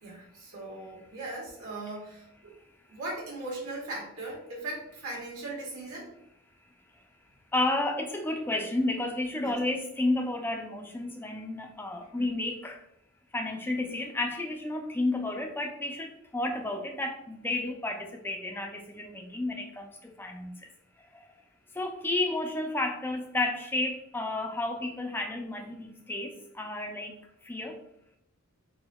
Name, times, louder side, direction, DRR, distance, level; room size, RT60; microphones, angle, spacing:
voice 1, 0.0-2.5 2.9-6.1 9.4-9.5 12.2-12.3, right 2 dB, 90° right, 1.5 m, -39 dB
voice 2, 7.5-12.8 13.3-20.7 21.0-21.4 21.7-27.8, left 2 dB, 10° left, 0.3 m, -32 dB
4.1 x 2.7 x 2.2 m
head